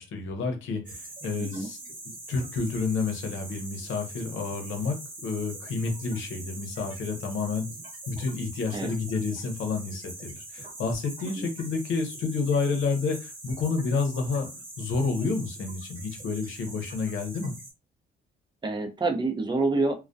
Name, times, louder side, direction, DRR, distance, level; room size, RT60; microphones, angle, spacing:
voice 1, 0.0-1.8 2.3-7.7 8.1-14.5 14.8-17.5, left 4 dB, 80° left, 4 dB, 0.8 m, -30 dB
sound 1, 0.9-17.7, right 2 dB, 40° right, 1.2 m, -43 dB
voice 2, 18.6-20.0, right 3 dB, 25° right, 5 dB, 0.6 m, -27 dB
2.2 x 2.2 x 2.5 m, 0.27 s
cardioid pair, 90°, 20 cm